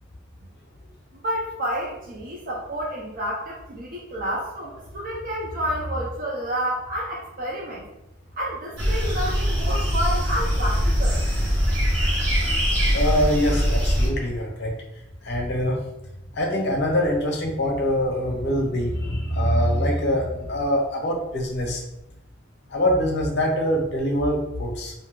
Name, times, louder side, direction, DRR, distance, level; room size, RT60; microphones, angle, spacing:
voice 1, 1.2-7.8 8.4-11.2, equal, 45° right, -4 dB, 0.5 m, -29 dB
sound 1, 8.8-14.1, equal, 60° right, 1.0 m, -22 dB
voice 2, 12.9-14.7 15.2-15.8 16.3-21.8 22.7-24.9, equal, 55° left, 1 dB, 0.7 m, -24 dB
2.6 x 2.3 x 3.6 m, 0.85 s
head